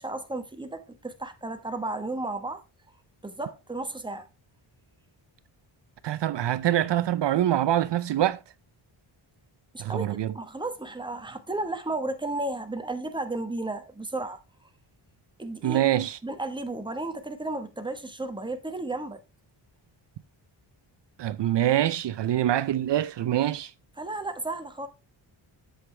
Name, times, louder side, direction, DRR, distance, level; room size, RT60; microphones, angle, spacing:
voice 1, 0.0-2.6 3.2-4.3 9.7-14.7 15.4-15.8 16.2-19.2 24.0-24.9, right 2 dB, 10° right, 1.2 m, -33 dB
voice 2, 6.0-8.4 9.8-10.3 15.6-16.2 21.2-23.7, right 12 dB, 60° right, 0.6 m, -25 dB
7.9 x 7.8 x 3.2 m
wide cardioid pair, 135°, 49 cm